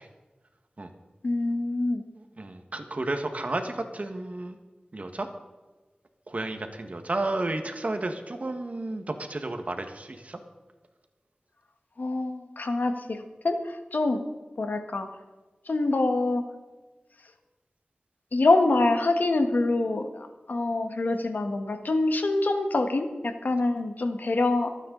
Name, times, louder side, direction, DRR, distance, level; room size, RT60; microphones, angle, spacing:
voice 1, 1.2-2.0 12.0-14.2 14.6-15.1 15.7-16.4 18.3-24.7, left 2 dB, 80° left, 6 dB, 1.5 m, -25 dB
voice 2, 2.4-4.5 4.9-5.3 6.3-10.1, right 2 dB, 50° right, 6 dB, 1.6 m, -32 dB
26.5 x 9.2 x 4.0 m, 1.2 s
wide cardioid pair, 70°, 3 cm